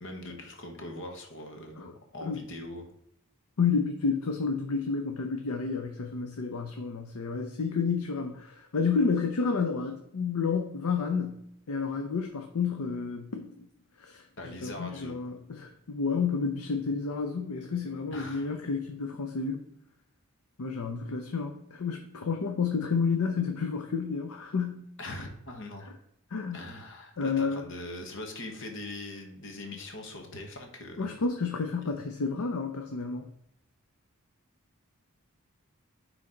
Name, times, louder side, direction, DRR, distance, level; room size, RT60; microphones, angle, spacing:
voice 1, 0.0-2.8 14.4-15.2 18.1-18.5 25.0-25.9 26.5-31.1, left 1 dB, 60° left, 3 dB, 1.2 m, -41 dB
voice 2, 3.6-13.7 14.0-19.6 20.6-24.9 26.3-26.6 27.2-27.7 31.0-33.3, left 5 dB, 90° left, 5 dB, 0.6 m, -30 dB
9.6 x 3.2 x 3.8 m, 0.78 s
head